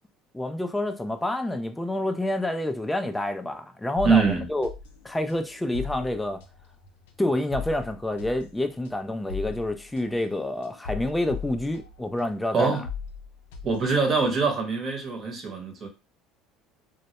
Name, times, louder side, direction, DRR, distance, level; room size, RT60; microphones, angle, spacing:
voice 1, 0.3-4.7 5.0-6.4 7.2-12.8, left 1 dB, 10° left, 0.3 m, -28 dB
sound 1, 4.0-12.4 12.6-14.6, left 6 dB, 90° left, 0.4 m, -39 dB
voice 2, 4.0-4.5 12.5-12.8 13.6-15.9, right 4 dB, 45° right, 0.8 m, -24 dB
2.1 x 2.0 x 2.9 m
supercardioid pair, 95°, 0 cm